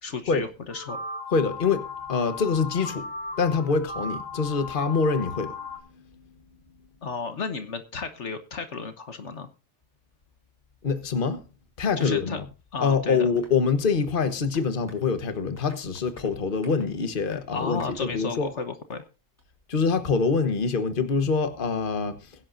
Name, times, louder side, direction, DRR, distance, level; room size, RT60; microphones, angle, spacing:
voice 1, 0.0-1.0 7.0-9.5 12.0-12.4 12.7-13.3 17.5-19.0, left 4 dB, 65° left, 1.5 m, -33 dB
sound 1, 0.7-5.8, left 4 dB, 85° left, 3.0 m, -36 dB
voice 2, 1.3-1.8 2.1-3.1 3.4-5.5 10.8-11.4 11.8-12.4 12.8-18.5 19.7-22.2, left 5 dB, 40° left, 1.4 m, -25 dB
Applause, 13.4-18.6 18.9-19.0 19.4-19.5 19.8-19.9, equal, 10° left, 5.0 m, -55 dB
21.5 x 11.0 x 2.7 m
omnidirectional pair, 1.3 m